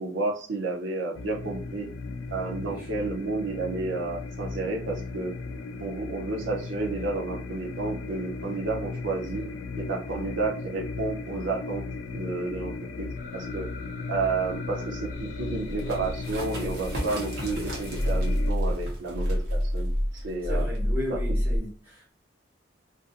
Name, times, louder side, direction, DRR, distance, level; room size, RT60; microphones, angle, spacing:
voice 1, 0.0-1.9 2.3-5.3 5.8-9.4 9.8-11.8 12.1-12.7 13.0-13.1 13.3-13.7 14.1-20.6 21.1-21.2, right 3 dB, 75° right, 0.5 m, -31 dB
sound 1, 1.1-18.5, left 4 dB, 90° left, 0.4 m, -36 dB
sound 2, 13.2-17.1 17.4-21.6, equal, 40° left, 0.6 m, -30 dB
sound 3, 15.7-21.0, right 1 dB, 50° right, 0.9 m, -40 dB
voice 2, 20.1-22.1, left 2 dB, 10° right, 1.0 m, -36 dB
2.5 x 2.5 x 2.4 m
head